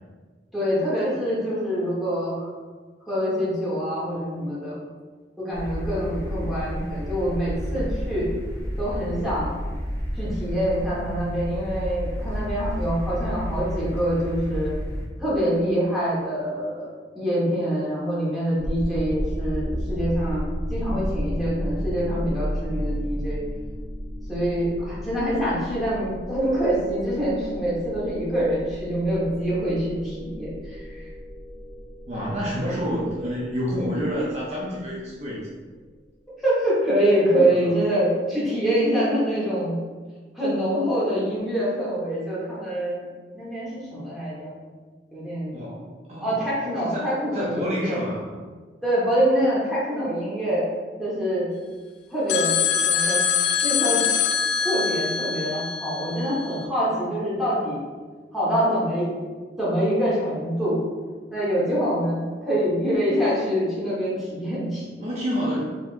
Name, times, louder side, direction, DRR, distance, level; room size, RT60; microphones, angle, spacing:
voice 1, 0.5-2.5 3.1-4.8 5.4-8.3 8.8-9.5 10.2-14.7 15.2-16.9 17.1-20.4 20.7-23.4 24.3-31.1 36.4-39.8 40.3-43.1 43.3-44.5 45.1-45.6 46.2-48.0 48.8-50.6 51.0-51.5 52.1-53.2 53.6-54.0 54.5-57.8 58.3-59.1 59.6-60.8 61.3-64.9, equal, ahead, -10 dB, 1.3 m, -25 dB
On The Train, 5.5-15.1, equal, 15° left, 0.7 m, -31 dB
sound 1, 18.6-35.5, equal, 80° right, 1.1 m, -33 dB
voice 2, 32.1-35.5 37.4-37.7 45.5-46.3 46.9-48.3 65.0-65.6, equal, 40° right, -6 dB, 0.6 m, -28 dB
sound 2, 52.3-56.6, left 7 dB, 85° left, 0.4 m, -24 dB
4.3 x 3.5 x 2.6 m, 1.4 s
head